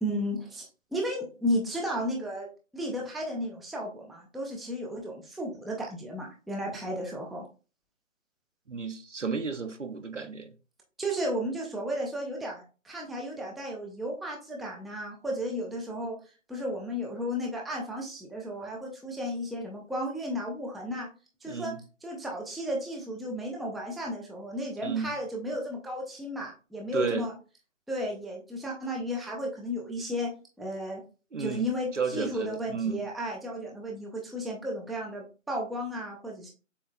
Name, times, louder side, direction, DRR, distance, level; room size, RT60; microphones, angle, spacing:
voice 1, 0.0-2.5 2.7-7.5 11.0-16.2 16.5-21.1 21.4-21.7 22.0-27.3 27.9-30.3 30.6-31.0 31.4-36.5, equal, ahead, 0.5 m, -34 dB
voice 2, 8.7-10.5 21.4-21.8 24.8-25.1 26.9-27.3 31.3-31.7 31.9-33.1, right 5 dB, 65° right, 0.7 m, -32 dB
7.0 x 2.7 x 2.2 m
figure-of-eight pair, 165°, 40 cm